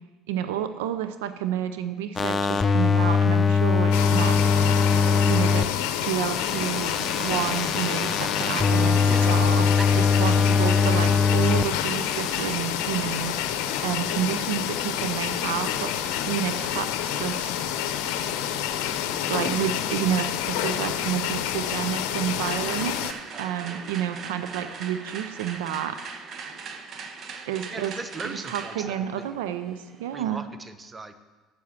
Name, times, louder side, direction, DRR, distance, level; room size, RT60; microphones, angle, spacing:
voice 1, 0.3-4.4 5.3-5.7 6.0-9.7 9.9-13.6 13.8-15.9 16.2-17.5 19.3-23.1 23.4-26.0 27.5-28.0 28.2-30.5, right 10 dB, 80° right, 10 dB, 0.5 m, -30 dB
sound 1, 2.2-5.6 6.0-11.7 12.0-12.4, left 5 dB, 30° left, 0.6 m, -22 dB
sound 2, 3.9-23.1, left 10 dB, 70° left, 0.6 m, -28 dB
sound 3, 22.4-30.4, right 5 dB, 50° right, 1.0 m, -40 dB
voice 2, 27.7-29.4 30.1-31.2, right 3 dB, 25° right, 10 dB, 0.8 m, -38 dB
7.6 x 7.0 x 7.2 m, 1.3 s
hypercardioid pair, 75°, 0 cm